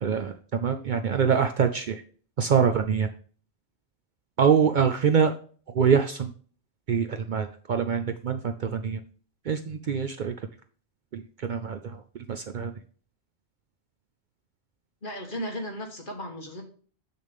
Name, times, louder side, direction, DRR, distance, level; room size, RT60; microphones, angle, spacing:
voice 1, 0.0-2.0 2.4-3.1 4.4-5.3 5.7-6.3 6.9-9.0 9.5-10.3 11.1-12.0 12.3-12.7, right 7 dB, 55° right, 7 dB, 0.6 m, -24 dB
voice 2, 15.0-16.6, equal, 50° left, 2 dB, 1.6 m, -35 dB
7.0 x 6.4 x 3.5 m, 0.43 s
omnidirectional pair, 1.1 m